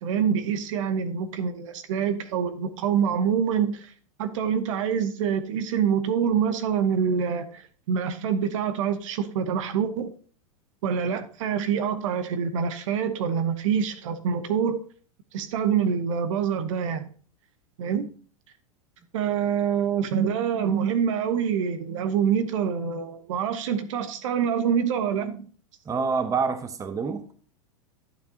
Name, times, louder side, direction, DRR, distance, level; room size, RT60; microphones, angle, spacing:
voice 1, 0.0-3.9 4.2-7.6 7.9-10.1 10.8-14.8 15.3-17.1 17.8-18.1 19.1-25.5, right 7 dB, 65° right, 1.0 m, -26 dB
voice 2, 25.9-27.3, right 5 dB, 20° right, 0.8 m, -27 dB
11.0 x 6.7 x 2.8 m
hypercardioid pair, 105°, 18 cm